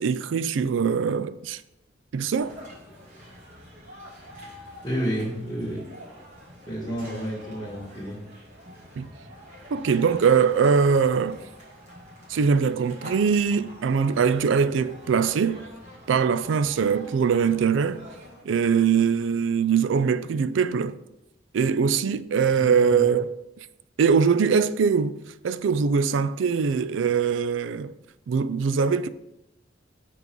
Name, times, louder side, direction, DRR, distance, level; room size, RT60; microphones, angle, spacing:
voice 1, 0.0-1.6 2.1-2.5 9.0-9.1 9.7-11.4 12.3-15.6 16.1-18.0 18.4-21.0 21.5-23.3 24.0-27.9 28.3-29.1, right 6 dB, 80° right, 0.4 m, -22 dB
sound 1, 2.4-18.4, equal, 40° right, 2.4 m, -46 dB
voice 2, 4.8-5.9 6.7-8.2 22.6-23.1, equal, 20° left, 1.8 m, -30 dB
6.0 x 4.6 x 5.3 m
head